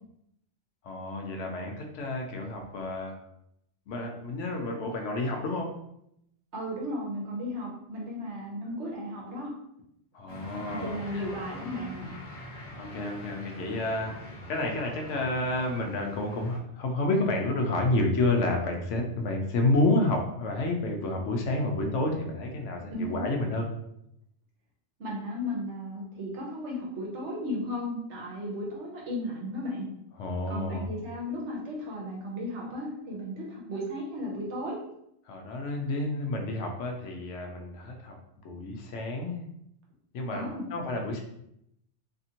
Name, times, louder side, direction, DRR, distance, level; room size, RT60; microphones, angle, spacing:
voice 1, 0.8-3.2 3.9-5.8 10.1-11.2 12.8-23.7 30.2-30.9 35.2-38.2 38.4-39.4 40.1-41.2, left 2 dB, 75° left, 2 dB, 0.9 m, -30 dB
voice 2, 6.5-9.5 10.7-12.1 22.9-23.2 25.0-29.8 30.5-34.8 40.3-40.7, equal, 65° right, -3 dB, 1.1 m, -35 dB
sound 1, 10.3-16.6, left 1 dB, 35° left, 0.9 m, -43 dB
2.8 x 2.5 x 2.8 m, 0.77 s
omnidirectional pair, 1.3 m